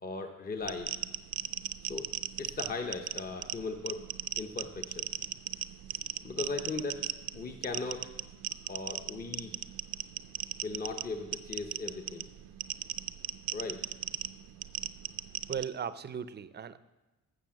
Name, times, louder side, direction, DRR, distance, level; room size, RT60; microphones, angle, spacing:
voice 1, 0.0-0.9 1.8-2.1 2.4-4.0 4.4-5.1 6.2-7.0 7.3-8.1 8.6-9.5 10.6-12.3 13.5-13.8, left 3 dB, 25° left, 4 dB, 0.7 m, -38 dB
sound 1, 0.6-15.6, right 13 dB, 80° right, 0.5 m, -38 dB
voice 2, 15.5-16.8, right 7 dB, 30° right, 14 dB, 0.5 m, -37 dB
11.5 x 7.0 x 7.4 m, 1.1 s
wide cardioid pair, 155°, 33 cm